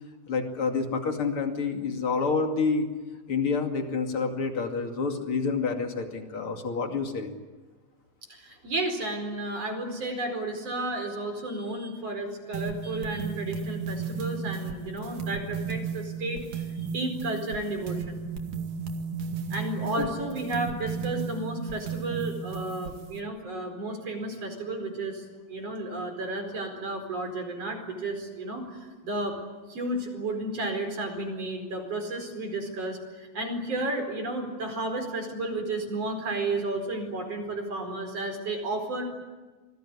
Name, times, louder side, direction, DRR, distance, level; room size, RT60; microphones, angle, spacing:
voice 1, 0.3-2.9 3.3-7.3 20.0-20.1, left 4 dB, 40° left, 4 dB, 2.1 m, -28 dB
voice 2, 8.3-18.2 19.5-29.3 29.7-39.0, right 2 dB, 30° right, 5 dB, 5.1 m, -32 dB
sound 1, 12.5-23.2, right 5 dB, 50° right, 2.8 m, -34 dB
28.5 x 20.0 x 9.8 m, 1.3 s
omnidirectional pair, 5.8 m